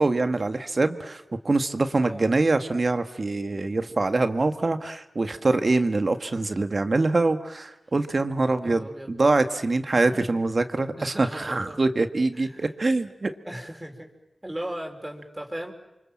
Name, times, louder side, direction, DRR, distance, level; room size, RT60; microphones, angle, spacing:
voice 1, 0.0-13.3, right 3 dB, 60° right, 8 dB, 1.8 m, -24 dB
voice 2, 8.6-9.1 10.0-10.4 11.0-11.8 12.3-12.7 13.4-14.1 14.4-15.7, right 1 dB, 20° right, 2 dB, 4.8 m, -37 dB
29.0 x 24.5 x 7.6 m, 0.95 s
cardioid pair, 40°, 0 cm